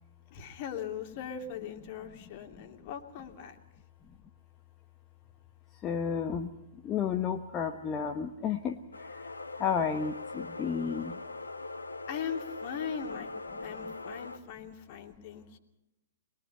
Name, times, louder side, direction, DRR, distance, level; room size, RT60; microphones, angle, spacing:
voice 1, 0.3-3.6 12.1-13.3 13.6-15.6, left 7 dB, 45° left, 4 dB, 2.8 m, -39 dB
voice 2, 5.8-6.5 6.8-8.7 9.6-11.1, left 7 dB, 25° left, 4 dB, 1.2 m, -31 dB
sound 1, 8.9-14.4, left 3 dB, 85° left, 1.3 m, -41 dB
22.5 x 22.0 x 5.6 m, 0.87 s
figure-of-eight pair, 110°, 0 cm